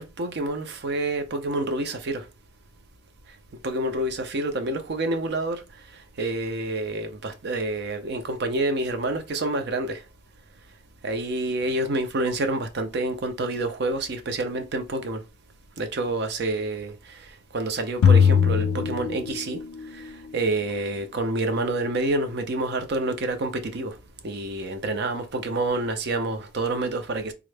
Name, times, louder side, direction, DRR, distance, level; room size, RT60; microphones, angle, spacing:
voice 1, 0.0-2.2 3.6-5.6 6.2-10.0 11.0-15.2 15.8-16.9 17.5-19.6 19.9-20.0 20.3-24.0 24.2-27.3, right 2 dB, 50° right, 0.5 m, -28 dB
sound 1, 18.0-19.8, left 7 dB, 80° left, 0.3 m, -19 dB
3.6 x 2.1 x 3.2 m
head